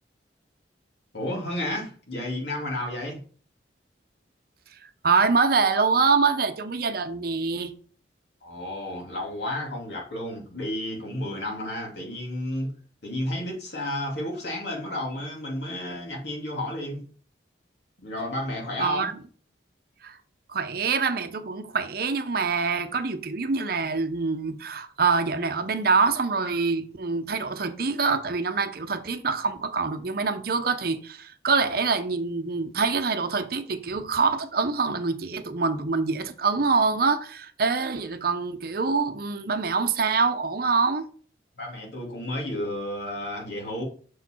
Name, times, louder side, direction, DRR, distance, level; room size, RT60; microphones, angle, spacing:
voice 1, 1.1-3.2 8.4-12.7 13.0-17.1 18.0-19.1 41.5-43.9, left 1 dB, 70° left, 2.6 m, -32 dB
voice 2, 5.0-7.7 18.8-19.1 20.0-20.2 20.5-41.1, right 4 dB, 55° right, 0.7 m, -25 dB
6.4 x 4.9 x 4.4 m
head